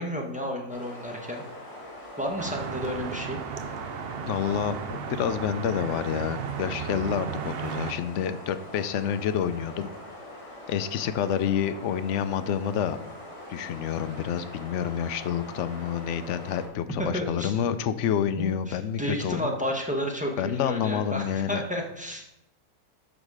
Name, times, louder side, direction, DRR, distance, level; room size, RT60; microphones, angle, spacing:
voice 1, 0.0-1.4 2.2-3.4 17.0-17.6 18.4-22.4, equal, 5° right, 0 dB, 1.0 m, -32 dB
sound 1, 0.7-16.7, left 1 dB, 40° left, 2.6 m, -43 dB
sound 2, 2.4-7.9, right 7 dB, 75° right, 0.5 m, -35 dB
voice 2, 4.3-9.9 10.7-13.0 13.5-19.5 20.4-21.6, left 8 dB, 65° left, 11 dB, 0.8 m, -28 dB
12.0 x 4.1 x 4.8 m, 0.84 s
omnidirectional pair, 1.7 m